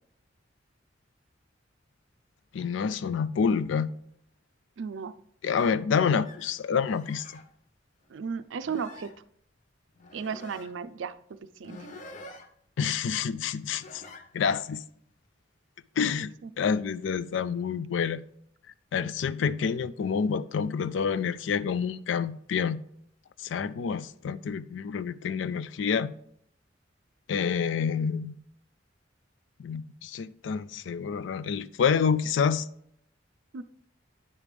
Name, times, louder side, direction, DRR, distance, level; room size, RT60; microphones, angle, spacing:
voice 1, 2.5-3.9 5.4-7.3 12.8-14.0 14.3-14.8 16.0-18.2 18.9-22.8 23.4-26.1 27.3-28.4 29.6-32.7, left 6 dB, 75° left, 0.4 m, -28 dB
voice 2, 4.8-5.1 8.1-9.1 10.1-11.1 11.6-11.8 16.0-16.1 16.4-16.5 33.5-33.6, right 6 dB, 80° right, 0.4 m, -34 dB
sound 1, 5.6-5.8 6.2-6.6 6.9-7.4 8.0-8.1 8.6-9.2 9.9-10.7 11.6-12.5 13.8-14.2, left 2 dB, 40° left, 0.7 m, -47 dB
9.7 x 3.3 x 5.1 m
head